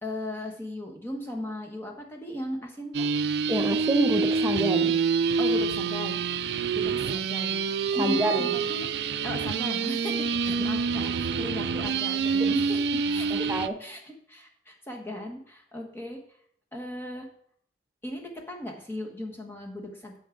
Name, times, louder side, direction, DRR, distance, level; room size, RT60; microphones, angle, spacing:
voice 1, 0.0-3.1 5.4-6.2 6.7-7.6 7.9-8.9 9.2-16.2 16.7-17.3 18.0-20.2, left 1 dB, 15° left, 1 dB, 1.2 m, -37 dB
sound 1, 2.9-13.7, right 5 dB, 70° right, 0.4 m, -27 dB
voice 2, 3.5-5.0 8.0-8.6 10.5-10.6 13.3-13.8, right 1 dB, 15° right, 6 dB, 0.6 m, -27 dB
9.2 x 7.1 x 3.8 m, 0.66 s
head